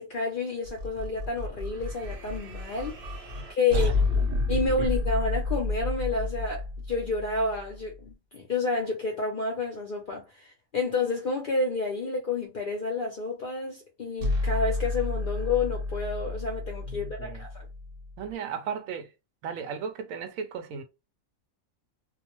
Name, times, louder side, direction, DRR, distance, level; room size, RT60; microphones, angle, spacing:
voice 1, 0.0-3.2 3.5-3.9 4.5-17.7, left 3 dB, 55° left, 0.6 m, -30 dB
sound 1, 0.6-8.0 14.2-18.3, left 2 dB, 55° right, 0.7 m, -31 dB
voice 2, 16.8-17.4 18.2-19.1 19.4-20.8, right 6 dB, 80° right, 1.0 m, -36 dB
2.5 x 2.0 x 2.9 m
omnidirectional pair, 1.4 m